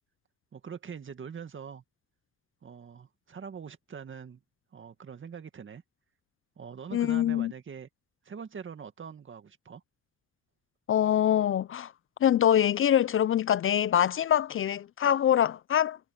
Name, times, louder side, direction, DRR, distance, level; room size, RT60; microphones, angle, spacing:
voice 1, 0.5-1.8 2.6-4.4 4.7-5.8 6.6-7.9 8.2-9.8, right 6 dB, 40° right, 2.0 m, -43 dB
voice 2, 6.9-7.5 10.9-11.9 12.2-16.0, left 10 dB, 45° left, 0.5 m, -24 dB
cardioid pair, 90°, 30 cm